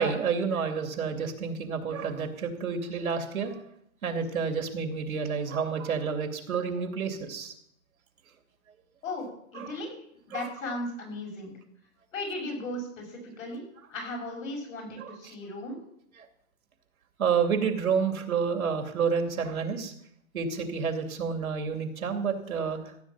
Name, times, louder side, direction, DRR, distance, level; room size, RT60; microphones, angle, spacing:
voice 1, 0.0-3.5 4.0-7.5 9.5-9.7 10.3-10.5 15.0-15.2 17.2-19.9 20.3-22.8, right 6 dB, 90° right, 5 dB, 2.8 m, -29 dB
voice 2, 9.0-9.9 10.3-11.5 12.1-13.6 13.9-15.8, left 2 dB, 70° left, 1 dB, 6.3 m, -36 dB
15.0 x 8.1 x 7.4 m, 0.73 s
hypercardioid pair, 165°, 41 cm